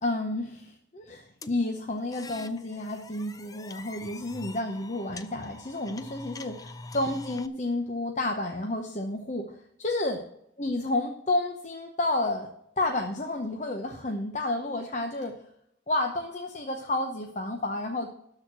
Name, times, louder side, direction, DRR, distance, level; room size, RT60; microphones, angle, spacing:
voice 1, 0.0-10.2 10.6-12.5 12.8-15.3 15.9-18.1, left 2 dB, 35° left, 3 dB, 0.8 m, -30 dB
sound 1, 1.4-7.5, left 3 dB, 20° left, 0.4 m, -45 dB
12.5 x 4.3 x 7.6 m, 0.75 s
head